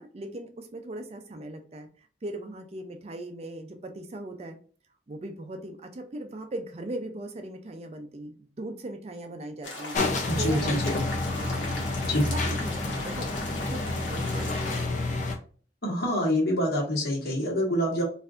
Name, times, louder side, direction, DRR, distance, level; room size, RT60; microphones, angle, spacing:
voice 1, 0.0-1.9 2.2-4.6 5.1-10.0 10.3-11.8 12.3-13.3 13.6-15.0, right 1 dB, 35° right, 6 dB, 0.4 m, -39 dB
sound 1, 9.6-14.9, left 2 dB, 80° left, 1.3 m, -39 dB
sound 2, 9.9-15.4, left 2 dB, 40° left, 0.6 m, -29 dB
voice 2, 10.3-10.9 12.1-12.2 15.8-18.0, equal, 55° left, -4 dB, 1.6 m, -26 dB
4.2 x 2.6 x 2.5 m, 0.42 s
head